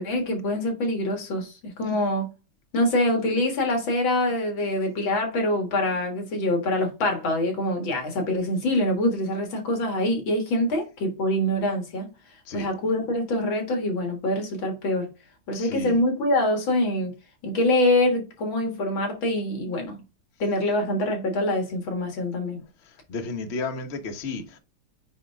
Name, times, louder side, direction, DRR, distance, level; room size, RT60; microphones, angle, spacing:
voice 1, 0.0-2.3 2.7-12.1 12.5-15.1 15.5-17.1 17.4-20.0 20.4-22.6, left 1 dB, 65° left, 2.4 m, -25 dB
voice 2, 15.5-16.0 23.1-24.6, left 3 dB, 40° left, 1.1 m, -32 dB
8.9 x 3.6 x 3.5 m
omnidirectional pair, 2.4 m